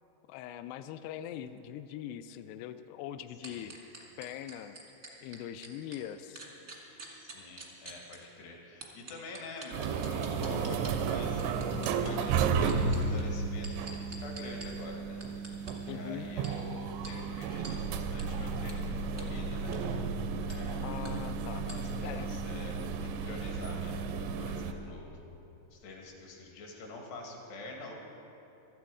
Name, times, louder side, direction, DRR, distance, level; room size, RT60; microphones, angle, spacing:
voice 1, 0.3-3.7 4.2-4.8 5.2-6.4 15.9-16.3 20.8-21.6 22.0-22.3, left 11 dB, 85° left, 10 dB, 2.3 m, -42 dB
sound 1, 3.4-6.0 6.3-8.2 8.8-10.9 11.4-12.1 12.6-14.7 15.2-15.7 16.4-16.5 17.0-17.1 17.6-17.7 18.2-18.3 18.7-18.8 19.2-19.3 19.6-19.8 20.5-20.6 21.0-21.1 21.7-21.8, right 2 dB, 50° right, 0.7 m, -46 dB
voice 2, 7.1-15.2 15.9-20.2 20.5-20.8 21.7-22.8 23.0-24.0 24.4-25.1 25.7-27.9, left 2 dB, 70° left, 0 dB, 3.8 m, -46 dB
sound 2, 9.7-24.7, right 5 dB, 90° right, 2.9 m, -33 dB
17.5 x 13.0 x 4.9 m, 2.9 s
omnidirectional pair, 5.1 m